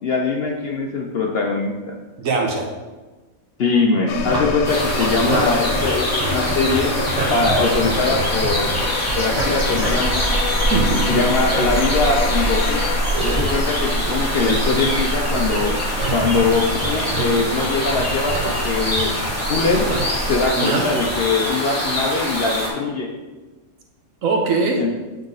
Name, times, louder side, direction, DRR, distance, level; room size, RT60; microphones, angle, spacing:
voice 1, 0.0-2.0 3.6-6.9 7.3-8.7 9.1-10.3 11.1-12.8 13.2-15.8 16.1-19.1 19.5-19.9 20.2-23.1 24.8-24.9, left 3 dB, 55° left, 1 dB, 0.7 m, -22 dB
voice 2, 2.2-2.7 10.7-11.2 20.6-20.9 24.2-24.8, right 4 dB, 70° right, 1 dB, 1.3 m, -21 dB
sound 1, 4.1-13.0, left 6 dB, 75° left, 1.0 m, -28 dB
sound 2, 4.1-20.5, right 2 dB, 30° right, 0.9 m, -25 dB
sound 3, 4.6-22.7, left 1 dB, 10° left, 1.3 m, -25 dB
8.1 x 3.8 x 3.9 m, 1.2 s
omnidirectional pair, 1.5 m